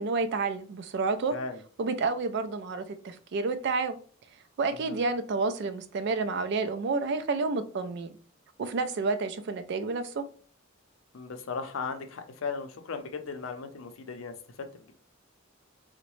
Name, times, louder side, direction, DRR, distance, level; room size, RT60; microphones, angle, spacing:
voice 1, 0.0-1.3 1.8-4.0 4.6-8.1 8.6-10.3, right 4 dB, 60° right, 0.4 m, -30 dB
voice 2, 1.3-1.6 4.8-5.0 11.1-14.9, left 4 dB, 80° left, 0.5 m, -37 dB
3.8 x 2.1 x 3.0 m
head